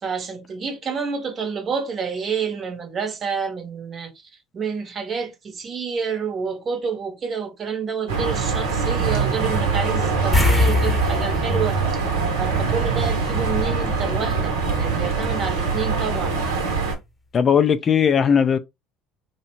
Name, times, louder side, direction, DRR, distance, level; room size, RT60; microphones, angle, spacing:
voice 1, 0.0-4.1 4.5-11.8 12.4-16.4, right 6 dB, 40° right, 0.8 m, -28 dB
sound 1, 8.1-16.9, right 4 dB, 80° right, 0.8 m, -23 dB
sound 2, 10.3-13.1 13.4-13.6 16.5-16.6 16.9-17.0, left 2 dB, 15° left, 0.8 m, -22 dB
voice 2, 17.3-18.6, left 7 dB, 40° left, 0.3 m, -17 dB
2.7 x 2.0 x 3.0 m
hypercardioid pair, 70°, 0 cm